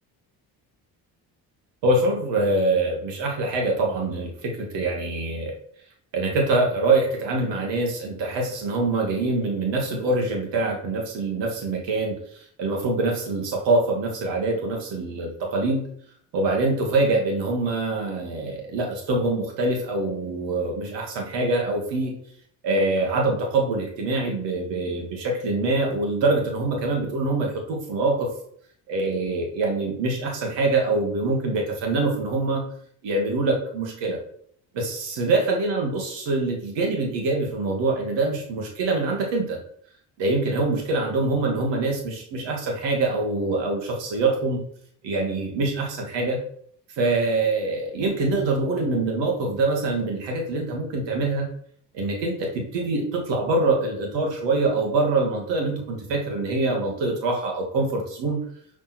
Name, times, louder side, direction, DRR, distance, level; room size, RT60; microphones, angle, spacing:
voice 1, 1.8-5.5 6.1-15.8 16.3-22.1 22.6-28.3 28.9-32.6 33.0-34.2 34.7-39.6 40.2-44.6 45.0-46.4 47.0-51.5 51.9-58.4, right 2 dB, 75° right, 1 dB, 2.3 m, -24 dB
6.1 x 5.9 x 4.4 m, 0.63 s
supercardioid pair, 60°, 43 cm